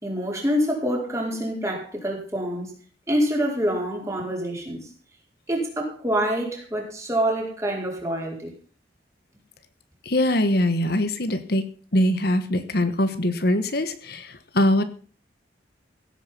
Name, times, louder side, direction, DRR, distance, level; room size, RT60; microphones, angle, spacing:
voice 1, 0.0-2.7 3.1-4.8 5.5-8.5, equal, 15° right, 0 dB, 4.7 m, -26 dB
voice 2, 10.0-11.7 11.9-14.8, left 1 dB, 55° left, 10 dB, 1.3 m, -22 dB
16.5 x 8.9 x 5.8 m, 0.41 s
head